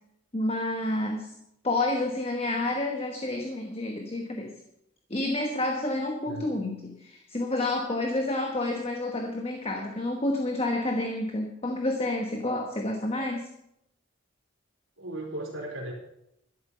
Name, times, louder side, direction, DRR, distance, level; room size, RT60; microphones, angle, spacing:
voice 1, 0.3-1.3 1.6-4.5 5.1-13.5, left 2 dB, 30° left, 3 dB, 1.3 m, -29 dB
voice 2, 6.3-6.6 15.0-15.9, right 1 dB, 80° right, -2 dB, 3.9 m, -36 dB
12.5 x 11.5 x 5.6 m, 0.80 s
head